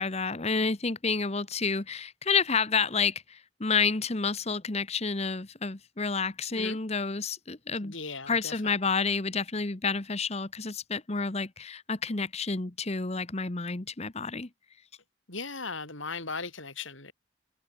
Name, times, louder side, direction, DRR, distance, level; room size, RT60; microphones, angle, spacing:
voice 1, 0.0-7.9 8.3-14.5, left 4 dB, 30° left, 1.1 m, -29 dB
voice 2, 7.8-8.7 15.3-17.1, left 4 dB, 70° left, 8.0 m, -38 dB
head